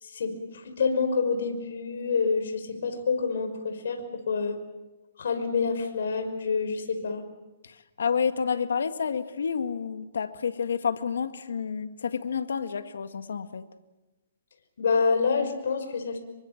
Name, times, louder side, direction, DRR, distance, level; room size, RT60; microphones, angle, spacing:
voice 1, 0.0-4.6 5.2-7.2 14.8-16.2, left 5 dB, 75° left, 6 dB, 5.6 m, -27 dB
voice 2, 7.6-13.6, left 6 dB, 90° left, 9 dB, 2.0 m, -29 dB
27.5 x 24.0 x 7.4 m, 1.1 s
hypercardioid pair, 160°, 0 cm